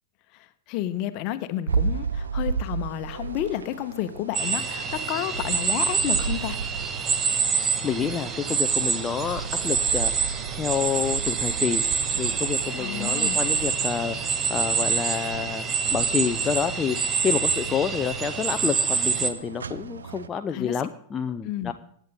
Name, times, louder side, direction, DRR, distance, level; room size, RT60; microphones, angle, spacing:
voice 1, 0.3-6.6 12.8-13.4 20.5-20.8 21.4-21.7, left 13 dB, 40° left, 12 dB, 1.2 m, -31 dB
sound 1, 1.7-20.3, right 5 dB, 70° right, 0.7 m, -35 dB
sound 2, 4.3-19.3, right 6 dB, 25° right, 1.4 m, -26 dB
voice 2, 7.8-11.8 12.2-15.7 15.9-17.0 17.2-21.7, left 7 dB, 20° left, 7 dB, 0.7 m, -28 dB
25.0 x 10.5 x 3.7 m, 0.66 s
figure-of-eight pair, 90°, 0 cm